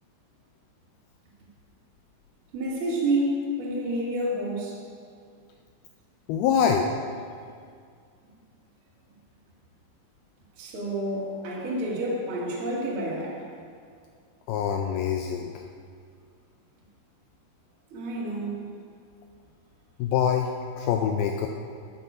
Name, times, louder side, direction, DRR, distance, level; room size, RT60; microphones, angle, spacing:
voice 1, 2.5-4.8 10.6-13.4 17.9-18.6, right 1 dB, 40° right, -5 dB, 2.1 m, -29 dB
voice 2, 6.3-6.9 14.5-15.5 20.0-20.5 20.8-21.5, left 8 dB, 85° left, 3 dB, 2.3 m, -24 dB
12.0 x 8.5 x 5.4 m, 2.2 s
omnidirectional pair, 5.0 m